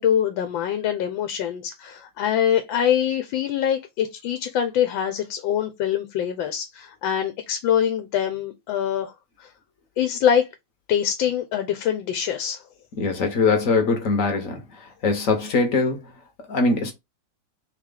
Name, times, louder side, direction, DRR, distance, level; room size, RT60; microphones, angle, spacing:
voice 1, 0.0-9.1 9.4-9.5 10.0-10.5 10.9-12.6, left 9 dB, 90° left, 1.4 m, -24 dB
voice 2, 13.0-16.0 16.5-16.9, left 3 dB, 55° left, 1.1 m, -22 dB
3.4 x 3.2 x 3.7 m
omnidirectional pair, 2.0 m